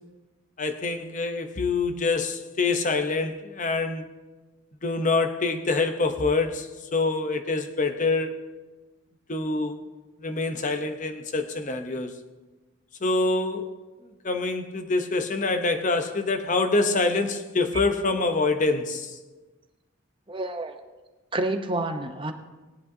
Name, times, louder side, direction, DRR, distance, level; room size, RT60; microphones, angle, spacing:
voice 1, 0.6-4.1 4.8-8.4 9.3-9.8 10.2-12.1 13.0-13.7 14.2-19.2, left 3 dB, 35° left, 8 dB, 0.8 m, -25 dB
voice 2, 20.3-20.8 21.3-22.3, right 2 dB, 25° right, 6 dB, 0.7 m, -28 dB
18.0 x 10.5 x 2.7 m, 1.2 s
head